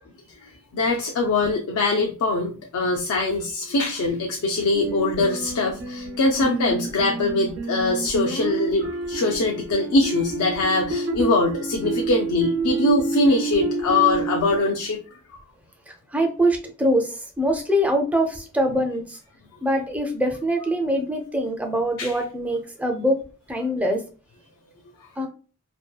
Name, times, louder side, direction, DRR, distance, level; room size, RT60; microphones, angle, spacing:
voice 1, 0.4-15.4 22.0-22.1, left 2 dB, 80° left, 1 dB, 0.4 m, -23 dB
sound 1, 4.7-14.6, right 3 dB, 60° right, 0.5 m, -29 dB
voice 2, 15.9-19.2 19.6-23.2 23.5-24.0 25.2-25.3, equal, 5° right, 3 dB, 0.4 m, -23 dB
2.7 x 2.2 x 2.3 m, 0.37 s
head